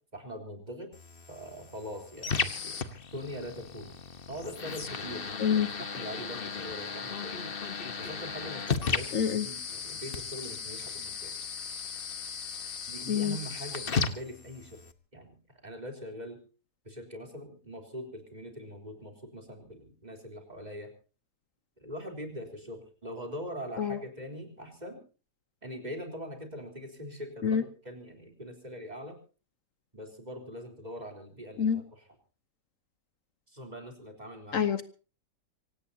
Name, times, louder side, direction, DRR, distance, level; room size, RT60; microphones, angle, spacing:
voice 1, 0.1-0.9 1.3-2.8 3.1-3.9 4.3-5.3 5.8-7.5 8.0-11.4 12.9-14.8 15.1-15.3 15.6-16.4 16.8-20.9 21.8-25.0 25.6-29.2 29.9-31.8 33.5-34.7, equal, 25° right, 3 dB, 3.8 m, -42 dB
sound 1, 0.9-14.9, left 5 dB, 40° left, 1.2 m, -36 dB
voice 2, 5.4-5.7 9.1-9.5 13.1-13.4 23.8-24.0 27.4-27.6 31.6-31.8 34.5-34.8, left 7 dB, 65° left, 12 dB, 1.3 m, -27 dB
25.5 x 17.5 x 2.8 m, 0.35 s
omnidirectional pair, 1.6 m